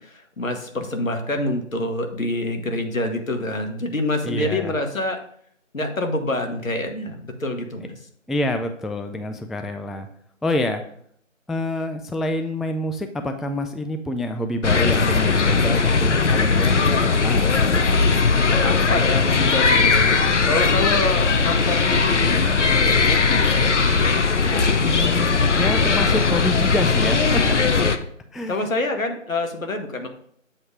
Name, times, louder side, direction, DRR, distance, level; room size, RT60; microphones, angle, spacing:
voice 1, 0.0-5.2 5.7-8.0 18.6-20.2 20.4-23.8 24.5-24.7 28.5-30.1, left 2 dB, 80° left, 5 dB, 1.3 m, -26 dB
voice 2, 4.2-4.7 8.3-10.1 10.4-10.8 11.5-17.5 24.8-27.7 28.3-28.6, left 1 dB, ahead, 7 dB, 0.3 m, -27 dB
sound 1, 14.6-28.0, left 4 dB, 60° left, 0.5 m, -19 dB
7.8 x 2.9 x 4.8 m, 0.65 s
figure-of-eight pair, 180°, 40 cm